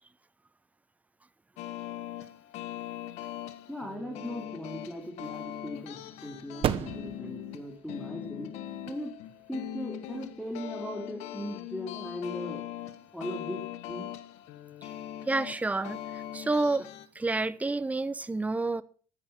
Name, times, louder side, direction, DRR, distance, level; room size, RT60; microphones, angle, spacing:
sound 1, 1.6-17.1, left 12 dB, 75° left, 1.6 m, -41 dB
voice 1, 3.7-8.5 8.8-9.2 9.5-12.6 13.1-14.1, left 1 dB, ahead, 4.0 m, -38 dB
sound 2, 4.1-11.3, right 10 dB, 55° right, 1.3 m, -39 dB
voice 2, 15.3-16.9 17.1-18.8, right 3 dB, 15° right, 1.0 m, -29 dB
14.0 x 11.0 x 6.0 m
supercardioid pair, 85°, 11 cm